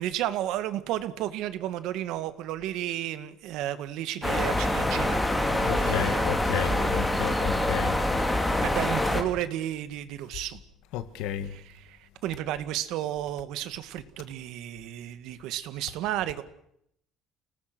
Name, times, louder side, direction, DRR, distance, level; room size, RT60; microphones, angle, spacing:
voice 1, 0.0-5.2 5.5-6.3 6.6-7.1 8.6-10.6 11.5-16.4, right 13 dB, 75° right, 12 dB, 1.9 m, -33 dB
sound 1, 4.2-9.2, left 1 dB, 10° left, 2.9 m, -25 dB
voice 2, 5.7-8.0 10.9-11.6, left 11 dB, 85° left, 11 dB, 2.1 m, -32 dB
30.0 x 19.0 x 6.2 m, 0.73 s
cardioid pair, 150°, 0 cm